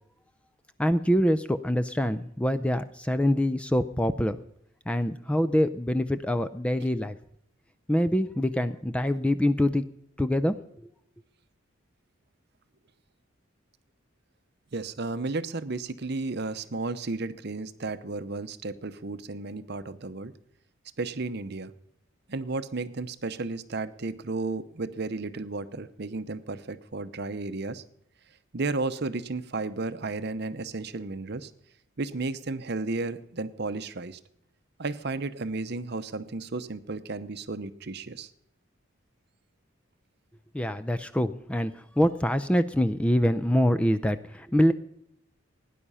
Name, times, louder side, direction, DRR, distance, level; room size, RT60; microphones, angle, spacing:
voice 1, 0.8-4.4 4.9-7.2 7.9-9.8 10.2-10.5 40.5-44.7, equal, 5° left, 12 dB, 0.4 m, -25 dB
voice 2, 14.7-20.3 21.0-21.7 22.3-27.8 28.5-31.5 32.0-34.2 34.8-38.3, right 3 dB, 55° right, 12 dB, 0.8 m, -33 dB
17.5 x 10.0 x 5.5 m, 0.73 s
head